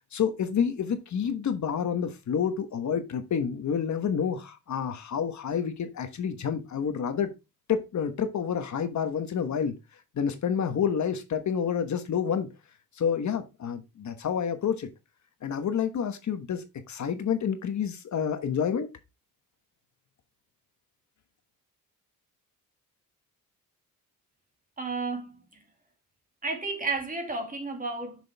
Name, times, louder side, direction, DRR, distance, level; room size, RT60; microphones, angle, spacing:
voice 1, 0.1-7.3 7.7-9.7 10.1-12.5 13.0-14.9 15.4-18.9, left 7 dB, 55° left, 1.2 m, -29 dB
voice 2, 24.8-25.6 26.4-28.2, right 3 dB, 25° right, 2.4 m, -32 dB
6.9 x 6.2 x 3.4 m
wide cardioid pair, 150°, 35 cm